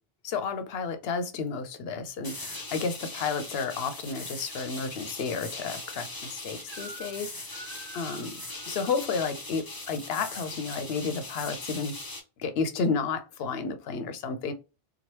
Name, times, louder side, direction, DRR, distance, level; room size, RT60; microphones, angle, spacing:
voice 1, 0.2-7.6 7.9-8.4 8.7-12.0 12.4-14.5, left 5 dB, 75° left, 0.8 m, -32 dB
sound 1, 2.2-12.2, left 2 dB, 25° left, 0.7 m, -40 dB
Crying sobbing / Screech, 6.7-7.2 7.5-9.0 9.8-10.5, right 2 dB, 40° right, 0.8 m, -48 dB
2.9 x 2.3 x 3.0 m
omnidirectional pair, 1.0 m